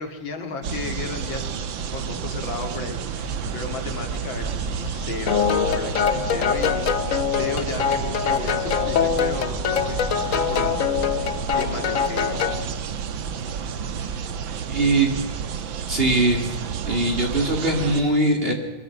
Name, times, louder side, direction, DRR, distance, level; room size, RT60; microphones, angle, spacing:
voice 1, 0.0-7.0 7.3-12.7 14.0-14.3, left 4 dB, 70° left, 5 dB, 2.9 m, -34 dB
sound 1, 0.6-18.0, right 7 dB, 75° right, 1.9 m, -31 dB
sound 2, 3.2-11.5, right 2 dB, 5° right, 6.5 m, -38 dB
sound 3, 5.3-12.6, left 7 dB, 50° left, 1.2 m, -24 dB
voice 2, 14.7-15.1 15.9-16.6 16.8-18.5, right 2 dB, 30° right, 3 dB, 3.0 m, -21 dB
22.0 x 22.0 x 6.1 m, 1.2 s
omnidirectional pair, 2.2 m